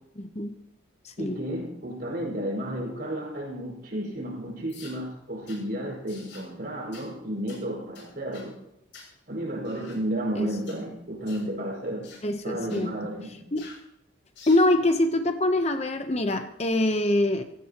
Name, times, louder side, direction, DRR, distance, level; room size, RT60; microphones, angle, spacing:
voice 1, 0.2-0.5 1.0-1.4 10.3-10.5 12.2-12.9 13.5-13.7 14.5-17.4, left 1 dB, 30° left, 7 dB, 0.9 m, -24 dB
voice 2, 1.2-8.6 9.3-12.1 12.4-13.5, right 1 dB, 50° right, -1 dB, 5.7 m, -32 dB
sound 1, 4.7-5.0 5.5-5.6 6.1-6.5 6.9-7.1 7.5-7.6 7.9-8.5 8.9-9.1 9.6-10.0 10.6-10.8 11.3-11.5 12.0-12.2 12.7-12.9 13.6-13.8 14.3-14.7, left 4 dB, 65° left, 6.9 m, -48 dB
25.5 x 16.5 x 3.0 m, 0.79 s
head